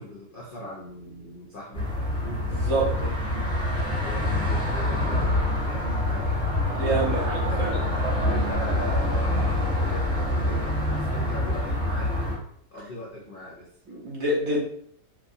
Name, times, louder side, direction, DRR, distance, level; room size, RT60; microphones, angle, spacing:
voice 1, 0.0-2.4 2.9-3.7 4.0-7.6 8.2-12.3 12.7-13.7, left 1 dB, 80° left, -6 dB, 0.4 m, -39 dB
sound 1, 1.7-12.4, left 1 dB, 5° right, 0.6 m, -26 dB
voice 2, 2.4-2.9 6.7-7.8 13.9-14.6, right 2 dB, 60° right, -3 dB, 0.9 m, -27 dB
2.9 x 2.3 x 2.6 m, 0.65 s
omnidirectional pair, 1.8 m